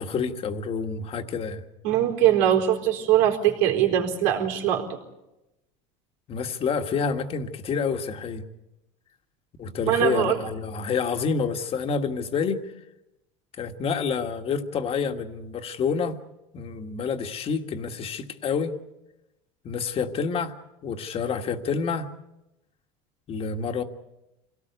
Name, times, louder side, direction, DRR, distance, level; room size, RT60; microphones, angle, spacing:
voice 1, 0.0-1.6 6.3-8.4 9.6-12.6 13.6-16.2 16.5-18.7 19.6-20.5 20.8-22.1 23.3-23.8, left 5 dB, 35° left, 6 dB, 1.7 m, -28 dB
voice 2, 1.8-5.0 9.9-10.5, right 11 dB, 80° right, 2 dB, 4.3 m, -22 dB
26.0 x 18.0 x 8.3 m, 0.96 s
supercardioid pair, 125°, 16 cm